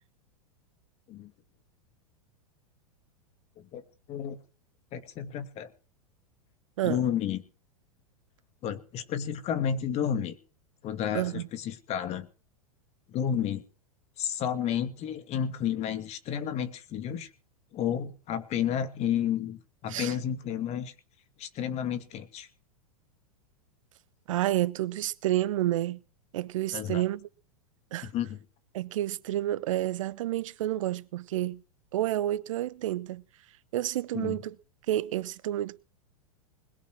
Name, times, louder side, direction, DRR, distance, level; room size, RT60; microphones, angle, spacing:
voice 1, 4.1-4.4 4.9-5.7 6.8-7.4 8.6-10.4 10.8-12.3 13.1-13.6 14.2-17.3 17.7-20.9 21.4-22.5 26.7-27.0 28.0-28.4 34.1-34.4, left 9 dB, 35° left, 2.5 m, -31 dB
voice 2, 11.1-11.5 19.9-20.1 24.3-26.0 26.3-27.3 27.9-28.1 28.7-31.6 31.9-33.2 33.7-34.5 34.9-35.8, right 14 dB, 60° right, 0.9 m, -29 dB
21.0 x 8.4 x 6.2 m
hypercardioid pair, 100°, 18 cm